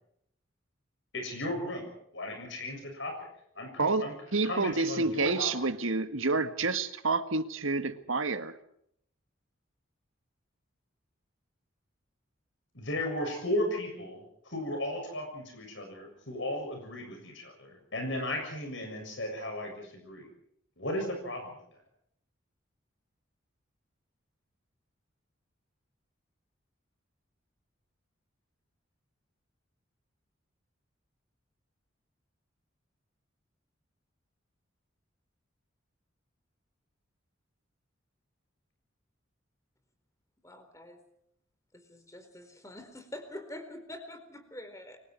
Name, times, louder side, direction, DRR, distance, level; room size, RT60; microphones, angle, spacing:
voice 1, 1.1-1.9 2.1-3.3 3.6-4.1 4.4-5.5 12.7-20.3 20.8-21.6, left 1 dB, 65° left, 3 dB, 7.0 m, -35 dB
voice 2, 3.8-8.6, right 3 dB, 80° right, 9 dB, 1.8 m, -29 dB
voice 3, 40.4-41.0 41.7-45.0, left 1 dB, 15° left, 7 dB, 4.3 m, -45 dB
29.5 x 24.0 x 4.7 m, 0.70 s
head